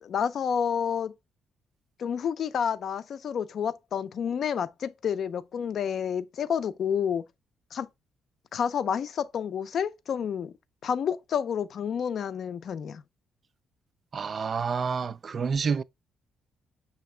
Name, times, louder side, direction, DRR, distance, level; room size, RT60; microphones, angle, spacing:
voice 1, 0.0-1.1 2.0-7.2 7.7-7.9 8.5-10.5 10.8-13.0, left 7 dB, 60° left, 0.4 m, -29 dB
voice 2, 14.1-15.8, right 5 dB, 45° right, 0.3 m, -28 dB
5.9 x 2.9 x 3.2 m
cardioid pair, 90°, 0 cm